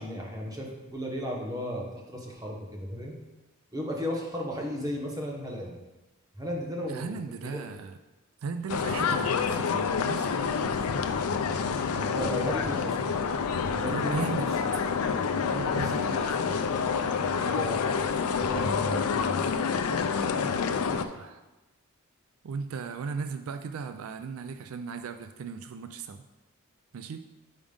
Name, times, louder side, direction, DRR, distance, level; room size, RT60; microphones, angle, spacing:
voice 1, 0.0-3.1 3.7-5.8 6.4-7.6 9.0-9.2 11.9-13.0 13.6-14.4 14.7-14.8 15.6-16.6 17.1-19.4, equal, 15° right, 0 dB, 0.9 m, -35 dB
voice 2, 6.8-8.0 8.4-10.9 13.7-14.5 15.5-16.2 20.9-21.4 22.4-26.2 26.9-27.2, right 5 dB, 75° right, 9 dB, 0.4 m, -37 dB
sound 1, 8.7-21.1, left 6 dB, 90° left, 0.4 m, -28 dB
5.2 x 4.9 x 5.2 m, 1.1 s
head